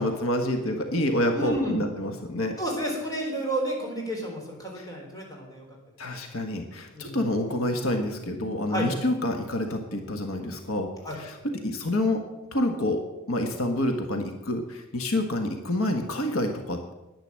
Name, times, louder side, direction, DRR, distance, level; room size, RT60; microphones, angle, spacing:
voice 1, 0.0-2.6 4.8-4.9 6.0-11.4 11.6-12.2 12.5-13.0 13.3-16.9, left 1 dB, 80° left, 5 dB, 1.5 m, -28 dB
voice 2, 1.3-1.8 2.6-5.7 6.9-7.3 8.7-8.9 11.0-11.2, right 1 dB, 15° left, -1 dB, 4.0 m, -31 dB
10.5 x 10.5 x 7.6 m, 1.0 s
head